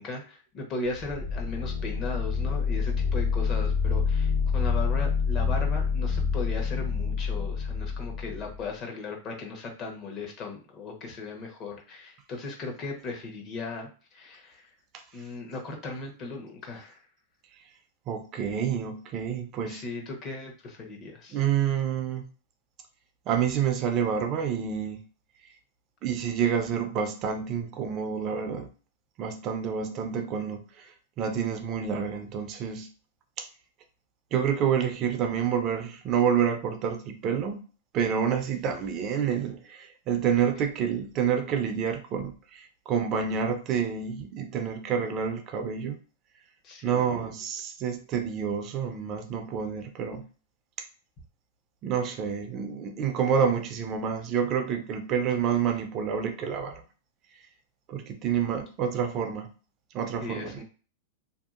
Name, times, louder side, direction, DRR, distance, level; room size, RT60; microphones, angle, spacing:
voice 1, 0.0-14.7 15.1-17.0 19.6-21.4 46.6-47.2 60.2-60.6, left 3 dB, 35° left, 0.9 m, -37 dB
sound 1, 0.9-8.6, left 5 dB, 60° left, 1.3 m, -27 dB
voice 2, 18.1-19.8 21.3-22.3 23.3-25.0 26.0-28.7 29.2-32.9 33.4-33.5 34.3-37.6 37.9-46.0 46.8-50.2 51.8-56.8 57.9-59.5 59.9-60.6, right 7 dB, 40° right, 0.4 m, -28 dB
2.6 x 2.4 x 2.4 m
hypercardioid pair, 125°, 0 cm